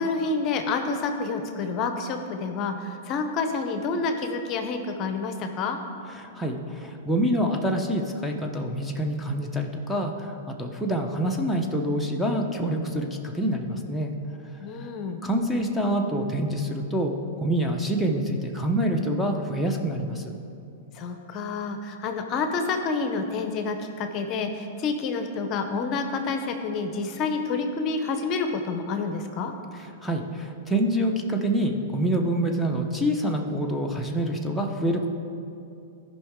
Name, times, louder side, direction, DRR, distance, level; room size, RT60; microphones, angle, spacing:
voice 1, 0.0-5.8 14.6-15.2 20.9-29.5, left 4 dB, 40° left, 6 dB, 0.8 m, -28 dB
voice 2, 6.2-14.1 15.2-20.3 29.7-35.1, right 1 dB, 5° left, 0 dB, 0.8 m, -26 dB
13.5 x 5.3 x 3.7 m, 2.6 s
hypercardioid pair, 120°, 0 cm